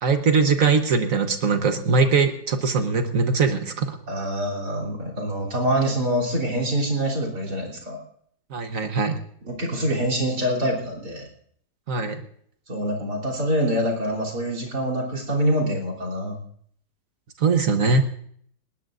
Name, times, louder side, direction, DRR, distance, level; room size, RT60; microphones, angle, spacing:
voice 1, 0.0-4.0 8.5-9.2 11.9-12.2 17.4-18.0, right 4 dB, 60° right, 7 dB, 1.5 m, -21 dB
voice 2, 4.1-8.0 9.5-11.2 12.7-16.4, equal, 85° right, 1 dB, 3.9 m, -25 dB
20.0 x 19.0 x 2.5 m, 0.62 s
omnidirectional pair, 1.7 m